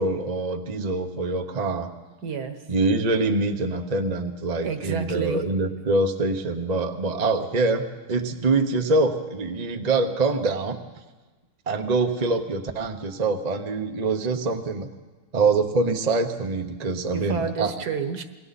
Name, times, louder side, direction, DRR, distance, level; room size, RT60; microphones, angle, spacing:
voice 1, 0.0-1.9 2.7-10.8 11.7-14.9 15.3-17.7, right 3 dB, 35° right, 4 dB, 0.6 m, -24 dB
voice 2, 2.2-2.6 4.6-5.5 17.1-18.2, right 6 dB, 55° right, 8 dB, 1.7 m, -29 dB
28.0 x 22.5 x 4.2 m, 1.2 s
omnidirectional pair, 2.3 m